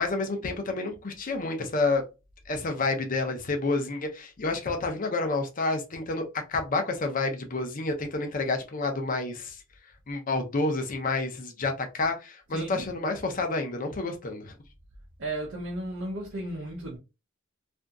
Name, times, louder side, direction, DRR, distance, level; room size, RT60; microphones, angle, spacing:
voice 1, 0.0-2.0 2.5-9.6 10.1-14.6, left 3 dB, 45° left, 0.6 m, -29 dB
voice 2, 12.5-12.9 15.2-17.0, right 1 dB, 70° right, 0.7 m, -34 dB
2.7 x 2.5 x 2.3 m
head